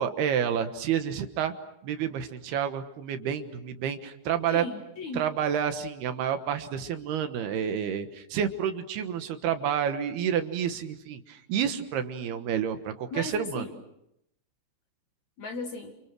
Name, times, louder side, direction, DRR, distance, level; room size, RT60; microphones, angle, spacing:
voice 1, 0.0-1.5 1.8-4.6 5.1-13.6, right 8 dB, 70° right, 8 dB, 3.1 m, -29 dB
voice 2, 4.5-5.3 13.1-13.8 15.4-16.0, left 2 dB, 50° left, 5 dB, 2.5 m, -36 dB
29.0 x 28.5 x 6.2 m, 0.80 s
omnidirectional pair, 5.1 m